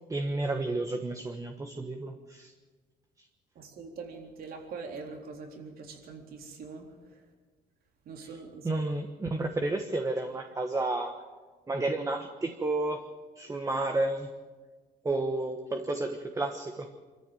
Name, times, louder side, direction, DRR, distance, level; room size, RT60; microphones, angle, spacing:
voice 1, 0.1-2.5 8.6-11.2 11.7-13.1 13.3-14.3 15.0-16.9, right 2 dB, 20° right, 5 dB, 1.3 m, -31 dB
voice 2, 3.6-7.2 8.1-8.7, right 4 dB, 60° right, 2 dB, 3.8 m, -43 dB
25.0 x 14.0 x 7.8 m, 1.4 s
cardioid pair, 110°, 17 cm